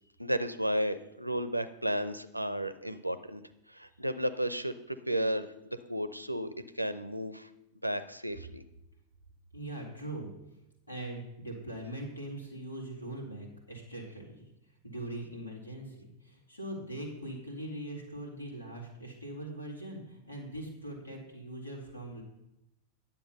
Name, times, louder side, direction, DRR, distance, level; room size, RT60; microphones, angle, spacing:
voice 1, 0.2-3.4 3.7-6.5 6.7-7.5 7.8-8.6, equal, 90° right, 13 dB, 0.6 m, -33 dB
voice 2, 9.5-10.3 10.9-22.2, right 1 dB, 85° left, -1 dB, 2.5 m, -41 dB
9.9 x 7.1 x 5.4 m, 0.87 s
figure-of-eight pair, 90°, 0 cm